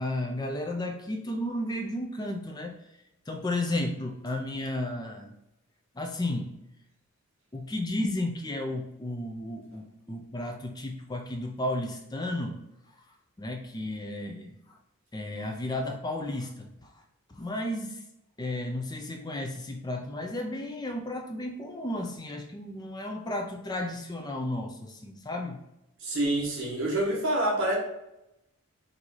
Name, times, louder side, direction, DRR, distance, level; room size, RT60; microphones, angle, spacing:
voice 1, 0.0-2.8 3.3-5.4 5.9-6.5 7.5-12.6 13.4-14.8 15.1-16.9 17.3-18.0 18.4-25.6, left 1 dB, 20° left, 3 dB, 0.4 m, -33 dB
voice 2, 26.0-27.8, right 1 dB, 60° right, -4 dB, 1.3 m, -27 dB
4.5 x 2.7 x 4.0 m, 0.88 s
head